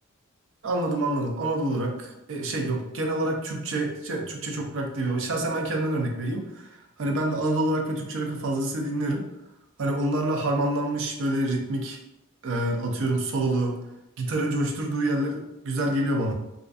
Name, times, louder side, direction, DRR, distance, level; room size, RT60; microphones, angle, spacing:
voice 1, 0.6-9.3 9.8-12.0 12.4-13.7 14.2-16.3, right 1 dB, 65° right, 2 dB, 0.4 m, -27 dB
2.4 x 2.4 x 2.3 m, 0.89 s
head